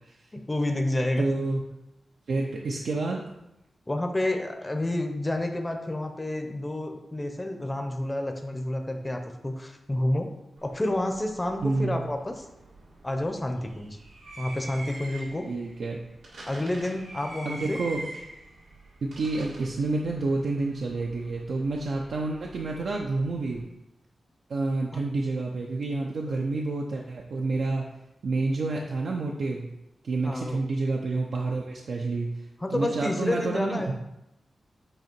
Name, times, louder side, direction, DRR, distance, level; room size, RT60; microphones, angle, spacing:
voice 1, 0.3-1.2 3.9-10.3 10.6-12.4 13.0-14.0 14.4-15.5 16.5-17.8 24.9-25.0 30.2-30.6 32.6-33.9, left 1 dB, 15° left, 4 dB, 0.6 m, -29 dB
voice 2, 1.2-1.6 2.3-3.3 11.6-12.1 15.5-16.0 17.4-18.0 19.0-23.6 24.5-27.8 28.2-29.7 30.0-32.3 32.7-33.9, right 3 dB, 70° right, -1 dB, 0.6 m, -29 dB
sound 1, 10.6-23.6, right 2 dB, 90° right, 1.6 m, -46 dB
7.8 x 2.8 x 4.5 m, 0.88 s
wide cardioid pair, 135°, 0 cm